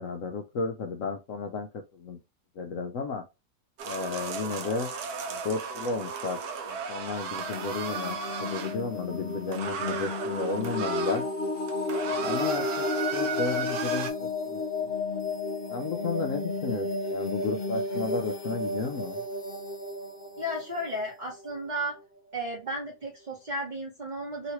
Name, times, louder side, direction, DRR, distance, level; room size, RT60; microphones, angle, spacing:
voice 1, 0.0-1.7 1.9-2.2 2.6-3.2 3.8-4.9 5.3-6.4 6.7-11.2 12.1-12.8 13.1-14.9 15.7-19.2, left 4 dB, 65° left, 4 dB, 0.8 m, -33 dB
sound 1, 3.8-8.8 9.5-11.2 11.6-14.1, right 6 dB, 70° right, 1.1 m, -35 dB
sound 2, 7.2-21.8, left 2 dB, 40° left, 1.2 m, -32 dB
voice 2, 20.4-22.0 22.3-24.5, equal, 35° right, -2 dB, 0.8 m, -34 dB
3.1 x 2.9 x 2.9 m, 0.24 s
omnidirectional pair, 1.7 m